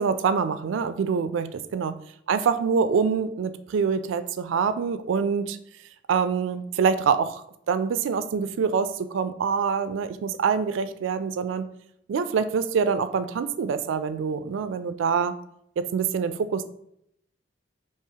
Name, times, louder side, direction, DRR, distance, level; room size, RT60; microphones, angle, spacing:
voice 1, 0.0-2.0 2.3-5.6 6.1-11.7 12.1-15.3 15.8-16.7, right 6 dB, 90° right, 11 dB, 0.3 m, -25 dB
4.7 x 2.9 x 2.8 m, 0.73 s
head